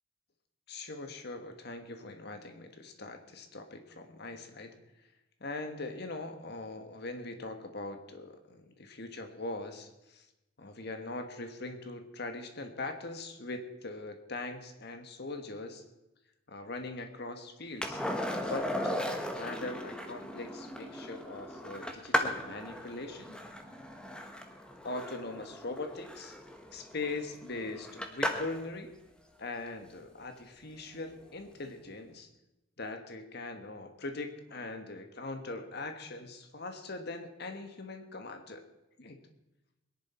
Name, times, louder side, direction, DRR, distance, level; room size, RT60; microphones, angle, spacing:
voice 1, 0.7-4.8 5.4-10.2 10.6-15.8 16.5-18.0 18.5-23.4 24.8-26.4 26.7-28.9 29.4-32.3 32.8-38.6 39.0-39.2, left 2 dB, 55° left, 6 dB, 1.5 m, -41 dB
Skateboard, 17.8-28.7 31.2-31.3, left 1 dB, 5° left, 1.3 m, -37 dB
23.0 x 10.5 x 4.4 m, 0.95 s
head